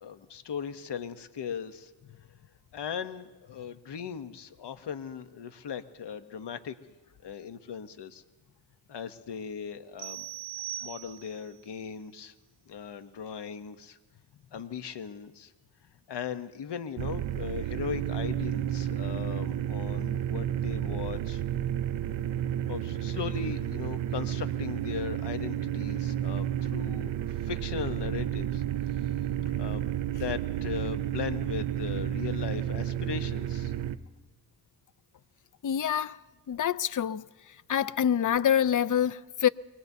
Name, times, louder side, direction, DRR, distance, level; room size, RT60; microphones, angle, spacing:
voice 1, 0.0-1.9 2.7-6.7 7.2-8.2 8.9-10.3 10.8-12.3 12.7-14.0 14.5-15.5 16.1-21.4 22.7-28.6 28.9-29.1 29.6-33.7, left 7 dB, 65° left, 0.9 m, -38 dB
sound 1, 10.0-11.5, right 13 dB, 45° right, 0.7 m, -39 dB
sound 2, 17.0-34.0, right 11 dB, 80° right, 0.6 m, -31 dB
voice 2, 35.6-36.2 36.5-37.3 37.7-39.5, left 9 dB, 45° left, 0.5 m, -26 dB
24.0 x 19.0 x 2.7 m
cardioid pair, 55°, 44 cm